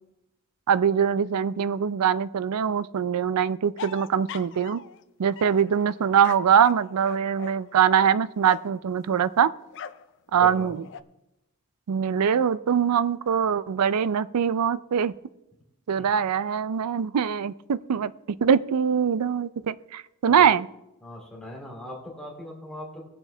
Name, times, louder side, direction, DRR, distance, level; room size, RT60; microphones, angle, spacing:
voice 1, 0.7-4.8 5.2-9.5 10.3-10.8 11.9-15.1 15.9-20.7, right 7 dB, 85° right, 18 dB, 0.4 m, -23 dB
sound 1, 3.8-5.0 5.4-8.8 9.7-10.1 10.5-11.0, left 8 dB, 55° left, 0.4 m, -42 dB
voice 2, 10.3-10.8 16.0-16.1 20.4-20.5 21.0-23.0, equal, 5° left, -3 dB, 2.7 m, -39 dB
19.0 x 7.2 x 3.4 m, 0.90 s
head